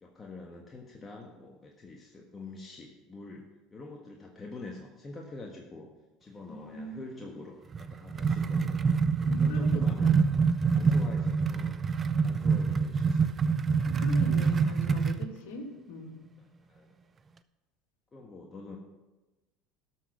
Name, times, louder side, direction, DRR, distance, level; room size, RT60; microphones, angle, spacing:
voice 1, 0.0-5.9 6.2-8.8 9.2-10.2 10.7-11.8 12.2-13.5 15.0-15.2 16.7-16.9 18.1-18.8, left 3 dB, 25° left, -1 dB, 1.5 m, -46 dB
voice 2, 6.5-7.0 9.2-10.2 10.7-11.3 13.9-16.2, left 2 dB, 75° left, 0 dB, 2.4 m, -41 dB
sound 1, 7.7-15.3, right 5 dB, 30° right, 0.5 m, -26 dB
12.5 x 6.3 x 5.8 m, 1.1 s
hypercardioid pair, 85°, 0 cm